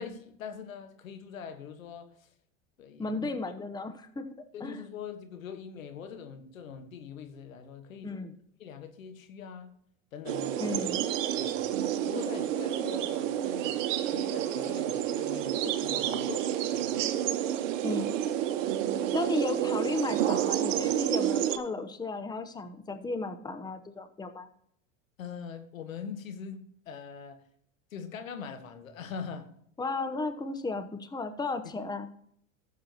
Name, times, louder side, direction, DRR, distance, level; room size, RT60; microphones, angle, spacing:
voice 1, 0.0-2.3 2.8-3.3 4.5-9.7 10.1-10.9 11.4-11.7 12.0-17.0 25.2-27.4 27.9-29.5, left 6 dB, 85° left, 1.5 m, -42 dB
voice 2, 3.0-4.3 4.6-4.8 8.0-8.3 10.6-11.0 17.8-18.1 19.1-24.5 29.8-32.1, left 3 dB, 10° left, 0.9 m, -34 dB
sound 1, 10.3-21.6, right 11 dB, 65° right, 1.1 m, -29 dB
15.0 x 7.4 x 2.9 m
hypercardioid pair, 95°, 39 cm